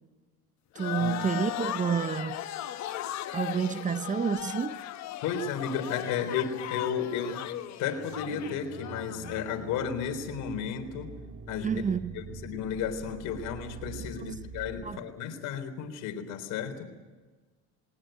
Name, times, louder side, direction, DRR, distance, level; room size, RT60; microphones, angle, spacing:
voice 1, 0.7-2.4 3.3-4.8 11.6-12.1 14.2-14.3 14.8-15.0, right 6 dB, 25° right, 0.7 m, -29 dB
sound 1, 0.8-9.5, left 13 dB, 60° left, 1.2 m, -37 dB
voice 2, 5.2-7.5 7.8-11.1 11.5-11.8 12.1-16.9, left 7 dB, 75° left, 3.8 m, -33 dB
sound 2, 8.0-15.0, right 5 dB, 45° right, 2.6 m, -44 dB
21.0 x 19.5 x 9.2 m
cardioid pair, 110°, 32 cm